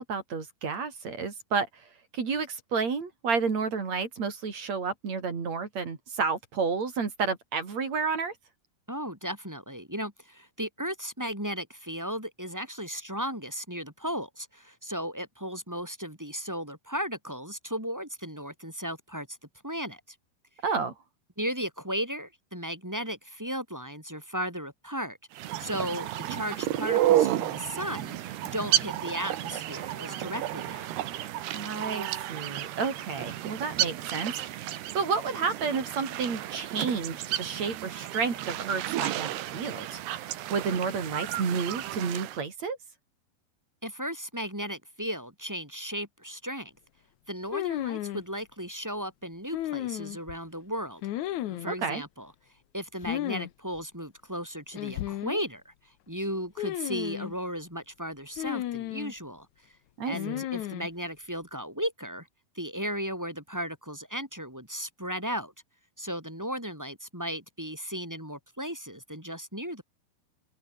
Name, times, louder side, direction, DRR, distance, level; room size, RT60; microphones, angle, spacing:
voice 1, 0.0-1.7 2.1-8.3 20.6-20.9 31.5-34.3 34.9-40.0 40.5-42.8 51.7-52.0 60.0-60.4, right 5 dB, 40° right, 4.5 m, -31 dB
voice 2, 8.9-19.4 19.6-20.0 21.4-30.9 43.8-46.7 47.3-51.0 51.5-52.3 52.7-55.7 56.1-59.5 60.0-62.3 62.5-65.5 66.0-69.8, equal, 5° right, 5.0 m, -35 dB
sound 1, 25.3-42.4, right 13 dB, 75° right, 3.5 m, -31 dB
sound 2, 47.5-48.2 49.5-50.4 51.0-51.7 53.0-53.5 53.8-53.9 54.7-55.4 56.6-57.3 58.4-59.1 60.1-60.9, left 13 dB, 80° left, 1.7 m, -33 dB
omnidirectional pair, 4.9 m